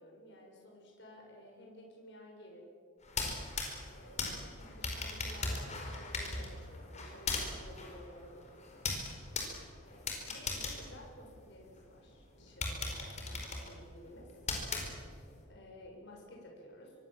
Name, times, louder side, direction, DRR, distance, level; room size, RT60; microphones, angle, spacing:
voice 1, 0.0-2.7 3.9-8.9 9.8-14.4 14.8-14.9 15.4-16.9, left 1 dB, 55° left, 0 dB, 6.8 m, -54 dB
sound 1, 3.0-11.8 12.2-12.3 12.6-15.4, left 3 dB, 30° left, 4.5 m, -39 dB
25.5 x 23.0 x 7.6 m, 2.1 s
head